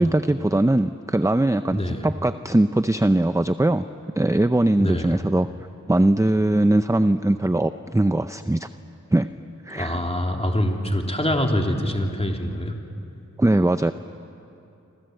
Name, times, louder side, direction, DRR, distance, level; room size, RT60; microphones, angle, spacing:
voice 1, 0.0-3.8 4.2-5.5 5.9-8.7 9.1-9.3 9.7-10.0 13.4-13.9, right 1 dB, 10° right, 10 dB, 0.6 m, -20 dB
voice 2, 4.8-5.2 9.7-12.7, left 1 dB, 20° left, 1 dB, 3.1 m, -25 dB
28.0 x 26.5 x 8.0 m, 2.7 s
wide cardioid pair, 55°, 31 cm